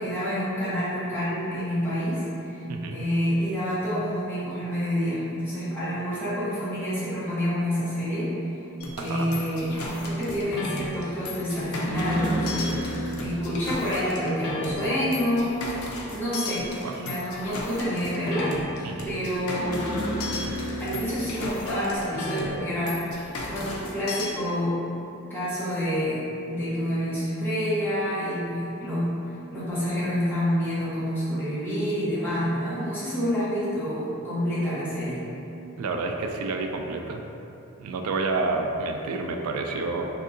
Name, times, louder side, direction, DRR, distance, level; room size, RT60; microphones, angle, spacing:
voice 1, 0.0-2.6 2.9-8.4 9.0-12.7 13.2-15.6 16.1-18.5 19.0-19.9 20.8-23.0 23.5-24.8 25.3-29.1 29.5-35.3, equal, 10° left, -12 dB, 0.8 m, -28 dB
voice 2, 2.7-3.0 9.0-9.3 16.7-17.0 18.8-19.2 35.8-37.2 37.8-40.1, right 3 dB, 85° right, 3 dB, 0.3 m, -29 dB
sound 1, 8.8-24.3, left 1 dB, 80° left, 0.5 m, -33 dB
3.5 x 2.7 x 2.5 m, 2.8 s
head